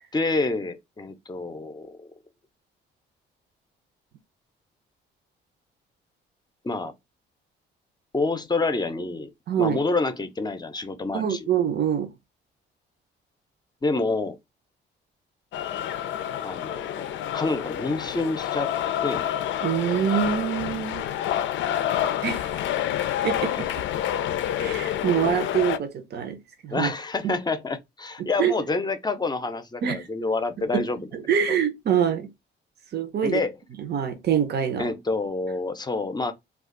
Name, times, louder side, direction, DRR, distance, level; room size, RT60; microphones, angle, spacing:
voice 1, 0.1-2.1 6.6-6.9 8.1-9.3 9.6-11.5 13.8-14.4 16.4-17.1 17.3-18.7 19.0-19.3 23.6-23.7 26.7-31.1 31.5-31.6 33.2-33.6 34.8-36.3, left 3 dB, 20° left, 0.6 m, -27 dB
voice 2, 9.5-9.8 11.1-12.1 19.6-21.1 22.2-22.5 23.2-23.7 24.6-26.4 26.6-26.9 28.4-28.5 29.8-30.1 30.7-30.8 31.1-32.3 32.9-33.4 33.8-34.9, right 8 dB, 55° right, 0.7 m, -25 dB
sound 1, 15.5-25.8, left 11 dB, 70° left, 0.4 m, -28 dB
2.4 x 2.4 x 3.7 m
cardioid pair, 90°, 20 cm